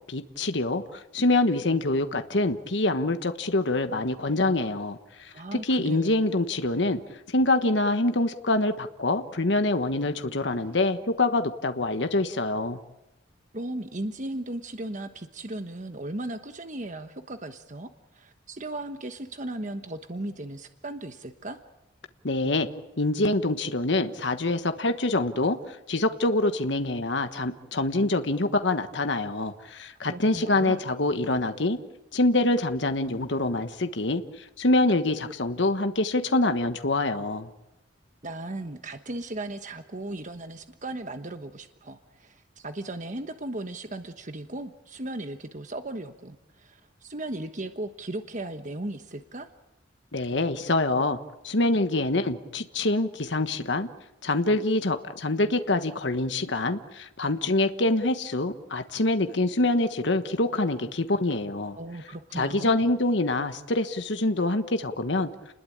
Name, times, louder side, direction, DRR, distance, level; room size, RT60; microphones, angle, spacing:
voice 1, 0.1-7.0 7.3-12.8 22.2-22.7 23.0-31.8 32.1-37.5 50.1-51.2 51.4-53.9 54.2-61.8 62.4-65.3, left 2 dB, 65° left, 8 dB, 1.3 m, -25 dB
voice 2, 5.3-6.1 13.5-21.6 30.0-30.8 38.2-49.5 61.7-62.9, right 1 dB, 40° right, 8 dB, 1.2 m, -36 dB
29.5 x 21.0 x 8.8 m, 0.94 s
head